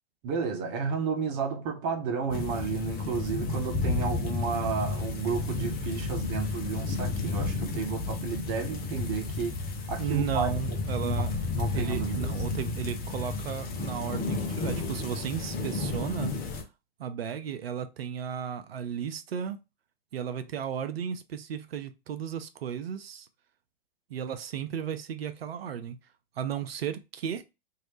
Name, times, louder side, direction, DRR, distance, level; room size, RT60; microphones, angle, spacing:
voice 1, 0.2-9.5 9.9-11.3 11.5-12.4 15.8-16.3, right 5 dB, 45° right, 1.1 m, -32 dB
sound 1, 2.3-16.6, left 3 dB, 30° left, 0.8 m, -32 dB
voice 2, 10.0-11.4 11.7-16.3 17.0-19.6 20.1-23.3 24.1-26.0 26.4-27.4, right 8 dB, 75° right, 0.6 m, -34 dB
3.1 x 2.8 x 3.0 m
hypercardioid pair, 105°, 31 cm